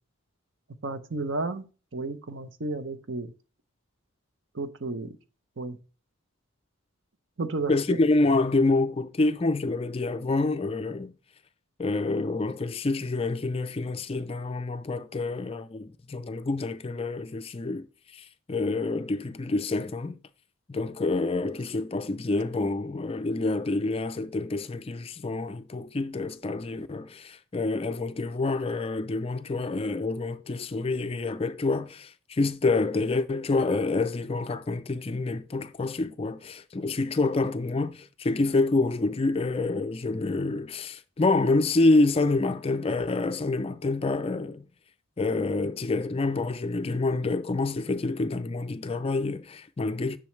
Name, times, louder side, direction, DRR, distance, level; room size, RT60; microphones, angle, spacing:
voice 1, 0.8-1.6 1.9-3.3 4.5-5.2 5.6-5.8 7.4-7.7, right 3 dB, 55° right, 0.7 m, -32 dB
voice 2, 7.7-11.1 11.8-17.9 18.1-20.2 20.7-44.6 45.2-50.2, left 3 dB, 25° left, 0.4 m, -27 dB
10.5 x 6.2 x 3.1 m
head